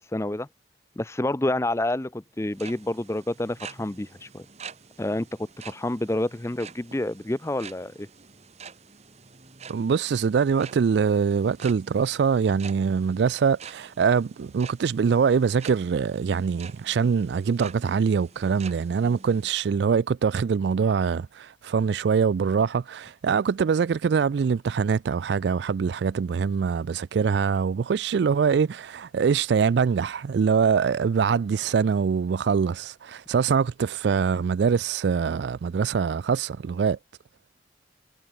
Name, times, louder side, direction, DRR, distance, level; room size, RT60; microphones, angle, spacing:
voice 1, 0.1-0.5 1.0-4.5 5.0-8.1, left 1 dB, 15° left, 0.5 m, -28 dB
sound 1, 2.4-19.5, right 6 dB, 35° right, 1.3 m, -47 dB
voice 2, 9.7-37.0, right 6 dB, 65° right, 0.3 m, -23 dB
head